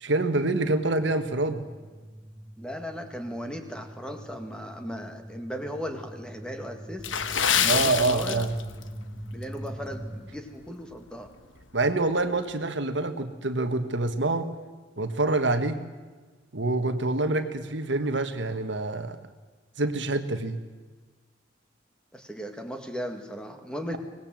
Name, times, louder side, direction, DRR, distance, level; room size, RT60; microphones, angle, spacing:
voice 1, 0.0-1.6 7.7-8.5 11.7-14.5 15.0-15.8 16.5-19.2 19.8-20.6, right 2 dB, 65° right, 8 dB, 1.6 m, -26 dB
sound 1, 1.8-10.2, equal, 30° right, 2.8 m, -43 dB
voice 2, 2.6-7.1 7.6-8.4 9.3-11.3 22.1-24.0, equal, 5° left, 5 dB, 2.0 m, -36 dB
Water / Splash splatter, 7.0-8.9 9.2-9.4 10.0-10.2 10.7-10.8, left 8 dB, 80° left, 1.2 m, -26 dB
24.5 x 19.0 x 7.7 m, 1.4 s
head